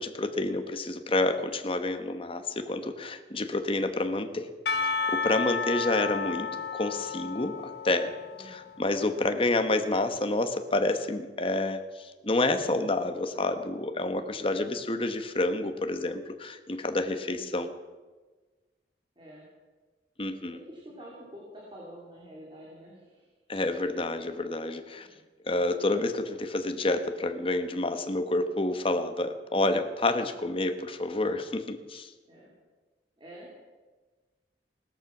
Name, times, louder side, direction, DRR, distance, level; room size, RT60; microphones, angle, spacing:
voice 1, 0.0-4.5 4.8-6.5 6.7-17.7 20.2-20.6 23.5-25.1 25.4-32.1, left 2 dB, 30° left, 8 dB, 1.1 m, -29 dB
Percussion / Church bell, 4.7-9.1, left 5 dB, 65° left, 0.9 m, -32 dB
voice 2, 8.3-8.7 12.2-12.9 14.0-14.5 17.3-17.6 19.1-19.5 20.5-23.3 25.0-25.2 32.2-32.5 33.2-33.5, right 1 dB, 30° right, -4 dB, 3.3 m, -48 dB
18.0 x 13.5 x 6.0 m, 1.3 s
head